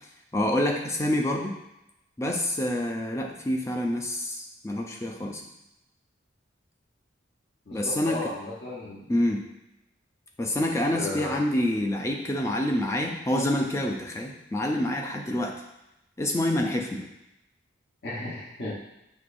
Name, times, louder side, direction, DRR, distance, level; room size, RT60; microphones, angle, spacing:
voice 1, 0.3-1.5 2.2-5.4 7.7-8.3 9.1-9.4 10.4-15.5 16.2-17.1, left 1 dB, 15° left, 1 dB, 0.4 m, -27 dB
voice 2, 7.7-9.1 10.9-11.4 18.0-18.8, left 2 dB, 55° left, -5 dB, 1.1 m, -35 dB
6.3 x 3.1 x 2.6 m, 0.89 s
head